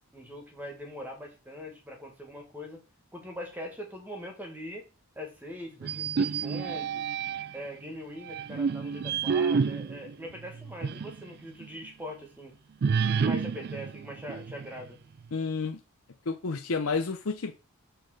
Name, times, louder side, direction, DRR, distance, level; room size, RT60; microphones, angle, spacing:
voice 1, 0.1-2.8 3.1-4.9 5.2-7.1 7.5-12.5 13.0-15.0, equal, 10° right, 1 dB, 1.8 m, -42 dB
sound 1, 5.8-7.7 8.2-11.2 11.6-11.7 12.8-14.9, right 6 dB, 45° right, 0.3 m, -29 dB
voice 2, 15.3-15.8 16.3-17.5, left 4 dB, 70° left, 5 dB, 0.7 m, -30 dB
6.7 x 4.0 x 6.5 m, 0.31 s
head